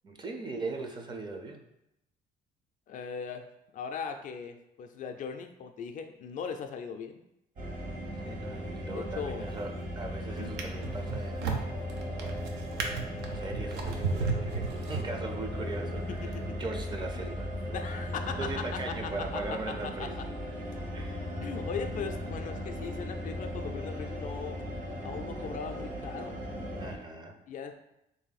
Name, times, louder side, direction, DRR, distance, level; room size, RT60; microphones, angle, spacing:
voice 1, 0.0-1.6 8.2-11.7 12.9-16.3 16.6-17.5 17.9-18.0 18.4-20.2 20.9-21.2 26.8-27.4, right 2 dB, 25° right, 3 dB, 0.6 m, -39 dB
voice 2, 2.9-3.5 3.7-7.2 8.9-9.4 10.4-10.7 16.2-16.6 17.7-19.4 20.0-20.1 21.4-24.6 25.0-26.4 27.5-27.8, left 6 dB, 50° left, 6 dB, 0.4 m, -39 dB
sound 1, 7.6-27.0, equal, 50° right, 1.2 m, -37 dB
Drawer open or close, 9.4-9.8 10.4-15.6 16.3-16.4, right 5 dB, 85° right, 0.6 m, -35 dB
3.4 x 2.7 x 4.0 m, 0.86 s
cardioid pair, 110°, 17 cm